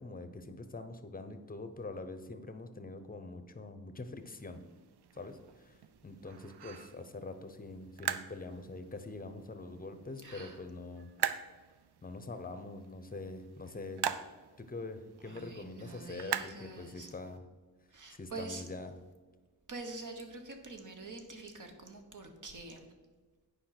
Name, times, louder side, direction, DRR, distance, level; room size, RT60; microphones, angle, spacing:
voice 1, 0.0-4.6 5.1-5.8 6.0-11.1 12.0-14.0 14.6-17.4 18.1-18.9, left 3 dB, 20° left, 9 dB, 0.8 m, -44 dB
sound 1, 4.2-17.4, right 9 dB, 80° right, 0.6 m, -43 dB
voice 2, 10.2-10.7 15.2-17.2 17.9-18.6 19.7-22.9, right 3 dB, 50° right, 4 dB, 1.3 m, -46 dB
9.0 x 5.2 x 5.9 m, 1.3 s
wide cardioid pair, 120°, 39 cm